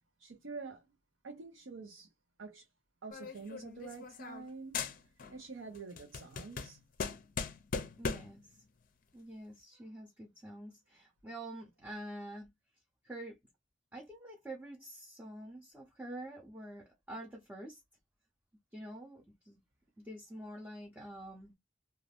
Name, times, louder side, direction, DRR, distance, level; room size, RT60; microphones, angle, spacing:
voice 1, 0.2-0.9 1.2-2.1 2.4-2.6 3.0-6.8, right 4 dB, 90° right, 0.7 m, -47 dB
sound 1, 3.1-4.5 4.7-5.4 5.7-8.4, left 5 dB, 45° left, 0.5 m, -39 dB
voice 2, 8.0-8.6 9.1-12.5 13.0-13.4 13.9-17.8 18.7-19.6 20.0-21.5, right 1 dB, 10° right, 0.5 m, -47 dB
2.5 x 2.3 x 3.3 m
head